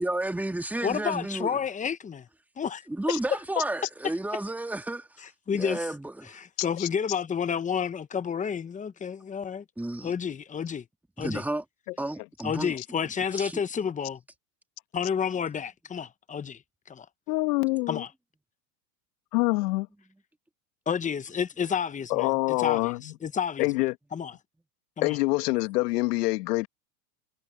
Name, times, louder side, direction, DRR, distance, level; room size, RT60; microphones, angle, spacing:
voice 1, 0.0-1.6 2.9-5.1 5.5-6.3 9.8-10.1 11.2-11.6 12.0-12.7 13.3-13.6, right 1 dB, 5° right, 2.0 m, -32 dB
voice 2, 0.8-2.3 2.6-2.8 5.5-5.9 6.3-9.6 10.0-10.8 11.2-11.4 12.4-14.2 14.9-16.6 16.9-17.1 17.9-18.1 20.9-23.7 24.1-24.3 25.0-25.2, left 7 dB, 15° left, 1.0 m, -30 dB
voice 3, 17.3-18.0 19.3-19.9 22.1-23.1 23.6-23.9 25.0-26.7, left 22 dB, 70° left, 2.0 m, -25 dB
supercardioid pair, 120°, 49 cm